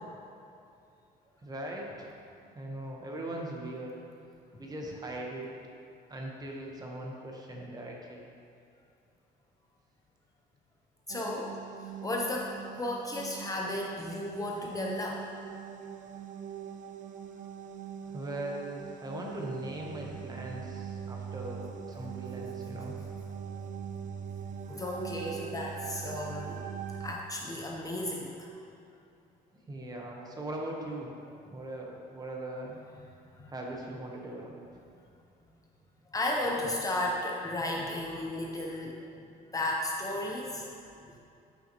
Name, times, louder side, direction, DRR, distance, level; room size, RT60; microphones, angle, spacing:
voice 1, 1.4-2.1 2.4-3.9 4.6-5.5 6.1-8.2 18.0-23.0 29.7-31.1 31.5-32.8 33.5-34.5, right 1 dB, 25° right, -1 dB, 1.0 m, -40 dB
voice 2, 11.1-11.5 12.0-15.2 23.5-23.6 24.7-26.6 27.0-28.5 33.4-33.5 36.1-38.9 39.5-40.7, left 1 dB, 20° left, -1 dB, 0.7 m, -34 dB
sound 1, 11.1-27.2, right 7 dB, 50° right, 0.5 m, -42 dB
8.7 x 5.4 x 3.0 m, 2.6 s
cardioid pair, 110°, 17 cm